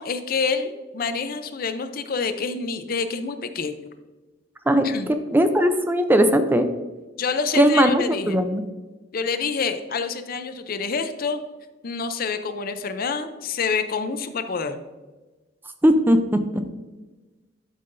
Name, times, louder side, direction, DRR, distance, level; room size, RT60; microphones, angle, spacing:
voice 1, 0.0-3.9 4.8-5.1 7.2-8.4 9.1-11.4 11.8-14.8, left 5 dB, 50° left, 9 dB, 0.5 m, -27 dB
voice 2, 4.7-6.7 7.6-8.6 15.8-16.6, equal, 10° right, 8 dB, 0.4 m, -19 dB
11.5 x 5.6 x 2.6 m, 1.2 s
head